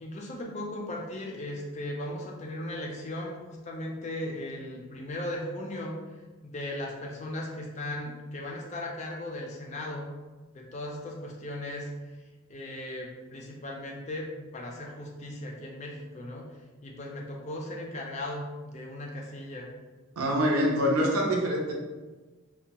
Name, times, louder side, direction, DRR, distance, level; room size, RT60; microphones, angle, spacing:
voice 1, 0.0-6.0 6.4-10.1 10.5-11.9 12.5-14.3 14.5-16.4 16.8-19.7 21.0-21.1, left 1 dB, 35° left, -1 dB, 0.3 m, -37 dB
voice 2, 20.2-21.7, equal, 90° right, -1 dB, 0.5 m, -25 dB
2.6 x 2.1 x 2.8 m, 1.3 s
head